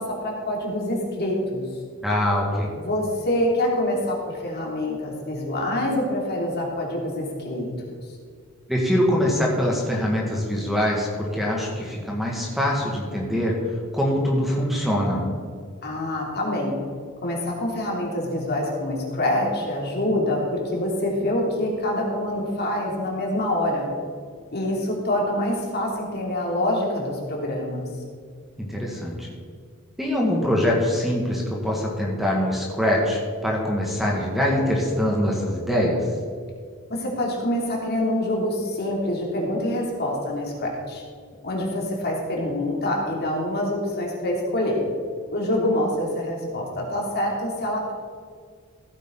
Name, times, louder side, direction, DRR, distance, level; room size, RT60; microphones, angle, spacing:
voice 1, 0.0-1.6 2.8-7.9 15.8-16.8 17.2-23.9 24.5-27.9 36.9-41.0 41.4-44.8 45.3-47.9, left 1 dB, 50° left, -1 dB, 2.8 m, -26 dB
voice 2, 2.0-2.7 8.7-13.6 13.9-15.2 28.6-29.3 30.0-36.1, equal, ahead, -2 dB, 1.9 m, -23 dB
15.5 x 9.1 x 3.9 m, 2.1 s
head